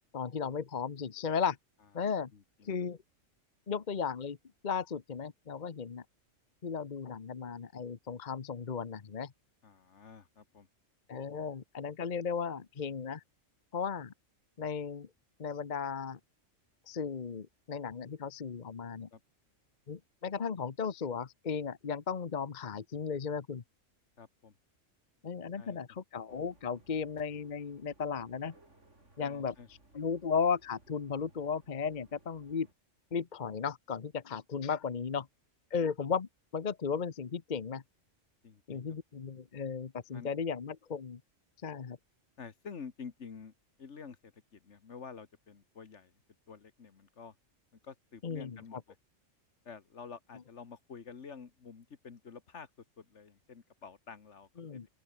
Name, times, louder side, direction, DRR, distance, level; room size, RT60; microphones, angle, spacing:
voice 1, 0.1-1.6 1.9-2.3 2.6-3.0 3.7-4.4 4.6-6.0 6.6-9.3 11.1-13.2 13.7-14.1 14.6-15.1 15.4-16.2 16.9-19.1 19.9-23.6 25.2-28.5 29.2-29.5 29.9-32.7 33.1-35.3 35.7-37.8 38.7-41.2 41.6-42.0 48.2-48.6 54.6-54.9, left 6 dB, 40° left, 1.0 m, -35 dB
voice 2, 2.3-2.7 9.6-10.7 19.1-19.2 24.2-24.6 25.6-25.8 29.2-29.7 38.4-39.0 40.1-40.3 42.4-43.5 43.8-46.1 46.5-47.4 47.8-49.0 49.7-52.7 53.0-54.8, left 6 dB, 60° left, 1.8 m, -49 dB
sound 1, 26.3-32.7, right 2 dB, 65° right, 5.8 m, -63 dB
open air
omnidirectional pair, 1.3 m